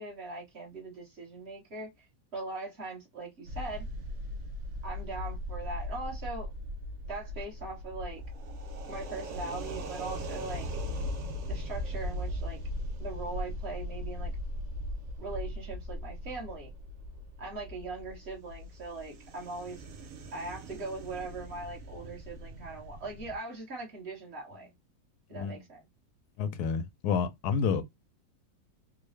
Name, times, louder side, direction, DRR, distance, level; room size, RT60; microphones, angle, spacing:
voice 1, 0.0-1.9 2.3-3.8 4.8-6.5 7.1-8.2 8.9-10.7 11.4-12.6 13.0-14.3 15.2-16.7 17.4-19.9 20.3-24.7 25.3-25.8, right 3 dB, 40° right, 1.4 m, -40 dB
sound 1, 3.4-23.4, left 1 dB, 65° right, 0.7 m, -39 dB
voice 2, 26.4-27.8, left 6 dB, 70° left, 1.0 m, -29 dB
3.7 x 2.2 x 3.2 m
omnidirectional pair, 2.0 m